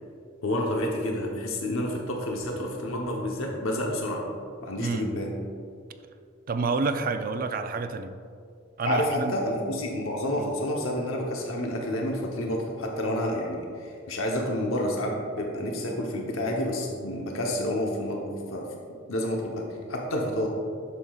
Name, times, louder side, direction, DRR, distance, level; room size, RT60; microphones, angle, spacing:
voice 1, 0.4-4.3 4.6-5.4 8.8-18.7 19.1-20.5, left 1 dB, 85° left, 0 dB, 0.9 m, -29 dB
voice 2, 4.8-5.1 6.5-8.2 8.8-9.3 10.4-10.5, right 4 dB, 45° right, 9 dB, 0.4 m, -28 dB
11.0 x 6.8 x 2.4 m, 2.3 s
head